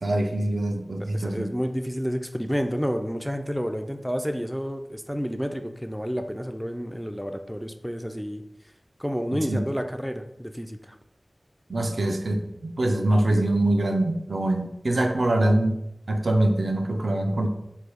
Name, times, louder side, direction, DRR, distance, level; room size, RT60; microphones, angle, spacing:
voice 1, 0.0-1.5 9.3-9.6 11.7-15.8 16.1-17.5, right 1 dB, 85° right, 3 dB, 0.4 m, -24 dB
voice 2, 1.1-8.4 9.0-11.0, equal, ahead, 6 dB, 0.3 m, -30 dB
3.2 x 2.3 x 3.4 m, 0.84 s
wide cardioid pair, 40°, 0 cm